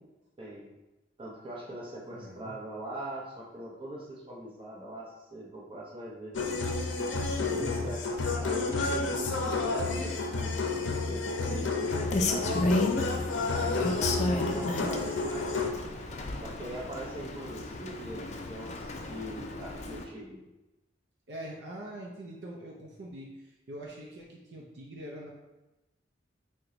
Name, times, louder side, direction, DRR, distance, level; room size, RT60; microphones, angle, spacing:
voice 1, 1.2-6.3 7.4-12.8 13.5-15.5 16.4-20.4, right 1 dB, 30° right, -4 dB, 0.8 m, -41 dB
voice 2, 2.1-2.6 7.5-7.9 13.7-13.9 21.3-25.3, right 1 dB, 65° right, -1 dB, 0.5 m, -43 dB
sound 1, 6.3-15.7, left 3 dB, 90° left, 0.5 m, -30 dB
Rain, 11.9-20.0, left 2 dB, 40° left, 0.4 m, -33 dB
4.5 x 2.2 x 3.8 m, 1.0 s
head